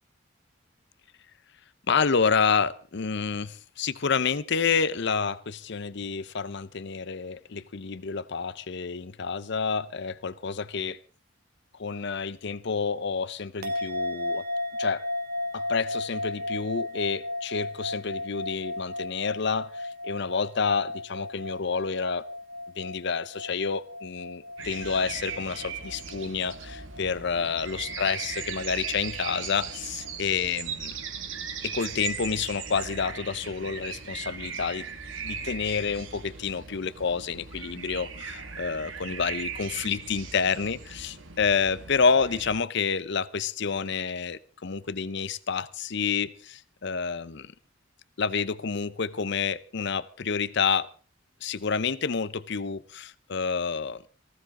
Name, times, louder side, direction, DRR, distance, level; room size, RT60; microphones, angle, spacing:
voice 1, 1.9-11.0 11.8-14.4 14.8-15.0 15.5-22.2 22.8-30.9 31.6-34.9 35.2-47.5 48.2-50.9 51.4-54.0, left 5 dB, 60° left, 0.7 m, -29 dB
sound 1, 13.6-30.1, left 2 dB, 50° right, 1.4 m, -36 dB
sound 2, 24.6-42.6, right 6 dB, 75° right, 2.2 m, -38 dB
19.5 x 15.5 x 3.8 m
head